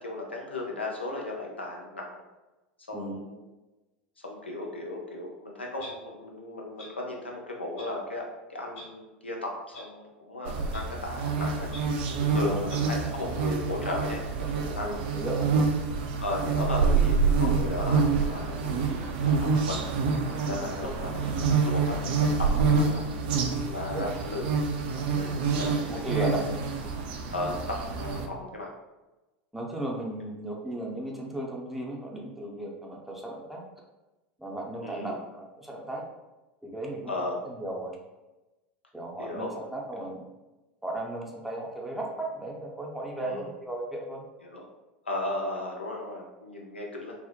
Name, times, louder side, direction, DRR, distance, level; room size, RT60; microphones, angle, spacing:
voice 1, 0.0-2.2 2.9-3.5 4.2-11.7 12.3-15.1 16.2-19.4 19.6-19.8 20.4-21.2 21.6-23.1 23.6-24.5 25.1-26.3 27.3-28.7 34.8-35.2 37.1-37.4 39.2-39.6 43.2-43.5 44.4-44.6 45.1-47.1, left 2 dB, 90° left, -1 dB, 0.4 m, -35 dB
Clock, 5.8-5.9 6.8-6.9 7.8-7.9 8.7-8.8 9.7-9.8 10.7-10.8 11.7-11.8 12.7-12.8, left 1 dB, 45° left, 1.1 m, -44 dB
sound 1, 10.4-28.3, right 4 dB, 55° right, 0.4 m, -27 dB
voice 2, 14.8-15.7 23.9-24.0 26.1-26.4 29.5-33.6 34.4-36.0 36.6-37.1 37.6-37.9 38.9-40.2 40.8-44.2, right 1 dB, 5° right, -2 dB, 0.5 m, -35 dB
2.6 x 2.1 x 2.3 m, 1.1 s
figure-of-eight pair, 85°, 6 cm